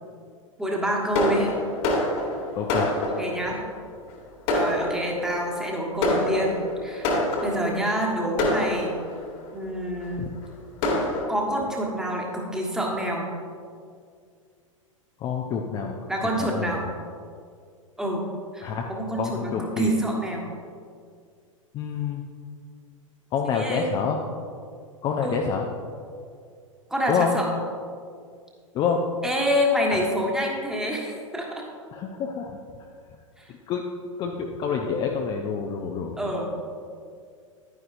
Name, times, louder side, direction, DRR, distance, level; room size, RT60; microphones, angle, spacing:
voice 1, 0.6-1.5 3.2-3.6 4.5-7.1 7.4-9.0 9.5-10.3 11.3-13.3 16.1-16.9 18.0-18.3 18.5-20.5 23.4-23.9 25.2-25.5 26.9-27.5 29.2-31.6 33.4-33.5 36.2-36.6, equal, 5° right, -1 dB, 1.4 m, -27 dB
Fireworks, 1.1-3.5 4.1-4.2 4.5-5.3 6.0-7.8 8.4-9.3 10.0-10.1 10.4-10.5 10.8-11.2, left 1 dB, 45° left, 1.7 m, -26 dB
voice 2, 2.5-3.0 10.2-10.3 15.2-16.0 16.4-16.9 18.6-18.8 19.2-19.9 21.7-22.2 23.3-24.2 25.0-25.7 27.1-27.3 28.7-29.1 29.9-30.1 31.9-32.6 33.7-33.9 34.2-36.3, left 6 dB, 25° left, 1 dB, 0.6 m, -27 dB
11.0 x 9.6 x 2.6 m, 2.2 s
figure-of-eight pair, 95°, 17 cm